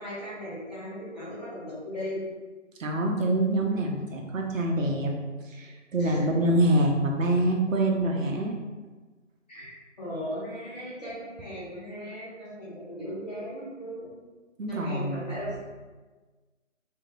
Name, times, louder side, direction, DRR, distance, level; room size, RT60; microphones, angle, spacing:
voice 1, 0.0-2.2 6.0-6.3 9.5-14.1 14.7-15.5, equal, 30° left, -9 dB, 1.0 m, -37 dB
voice 2, 2.8-5.1 5.5-8.5 14.6-15.3, right 1 dB, 85° right, 1 dB, 0.7 m, -25 dB
2.9 x 2.6 x 2.5 m, 1.3 s
figure-of-eight pair, 170°, 38 cm